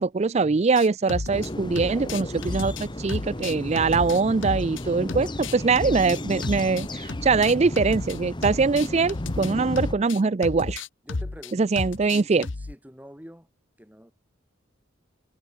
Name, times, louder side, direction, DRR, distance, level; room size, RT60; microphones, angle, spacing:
voice 1, 0.0-10.8 11.5-12.5, right 4 dB, 30° right, 0.4 m, -23 dB
sound 1, 0.8-1.5 1.8-4.8 5.1-8.2 8.4-12.7, left 3 dB, 65° left, 0.9 m, -33 dB
sound 2, 1.3-9.9, left 1 dB, 20° left, 1.5 m, -34 dB
voice 2, 11.0-13.5 13.8-14.1, equal, 10° right, 6.4 m, -46 dB
head